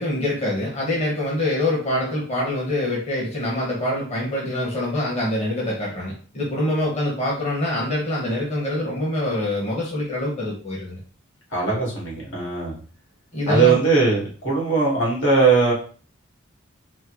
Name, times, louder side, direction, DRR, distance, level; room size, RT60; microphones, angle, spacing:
voice 1, 0.0-11.0 13.3-13.8, left 1 dB, 35° left, -4 dB, 1.2 m, -25 dB
voice 2, 11.5-12.8 13.5-15.7, right 4 dB, 75° left, -4 dB, 2.2 m, -19 dB
4.4 x 2.2 x 4.6 m, 0.40 s
head